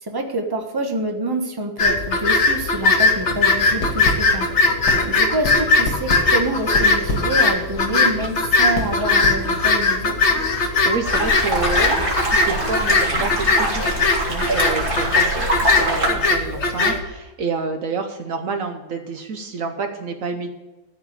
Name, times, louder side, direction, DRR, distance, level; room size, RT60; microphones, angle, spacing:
voice 1, 0.0-4.5 5.0-10.2, right 1 dB, 15° right, 4 dB, 1.2 m, -26 dB
sound 1, 1.8-17.0, left 3 dB, 50° left, 1.4 m, -19 dB
sound 2, 3.8-9.9, left 1 dB, 85° left, 2.4 m, -29 dB
voice 2, 10.5-20.5, right 4 dB, 60° right, 6 dB, 1.2 m, -29 dB
sound 3, 11.0-16.1, right 1 dB, 35° right, 2.6 m, -24 dB
14.0 x 4.9 x 8.3 m, 1.1 s
omnidirectional pair, 1.6 m